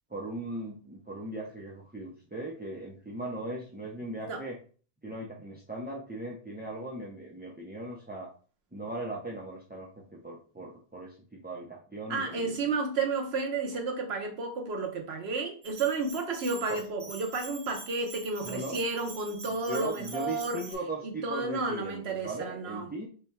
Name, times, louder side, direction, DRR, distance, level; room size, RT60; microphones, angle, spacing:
voice 1, 0.1-4.6 5.0-8.3 8.7-12.5 16.7-16.8 18.4-18.8 19.4-23.1, right 2 dB, 15° right, -3 dB, 0.4 m, -38 dB
voice 2, 12.1-20.6 21.0-22.9, right 3 dB, 70° right, 3 dB, 1.1 m, -32 dB
Bell, 15.6-20.8, right 3 dB, 45° right, 1.0 m, -46 dB
3.4 x 2.3 x 4.2 m, 0.40 s
omnidirectional pair, 1.1 m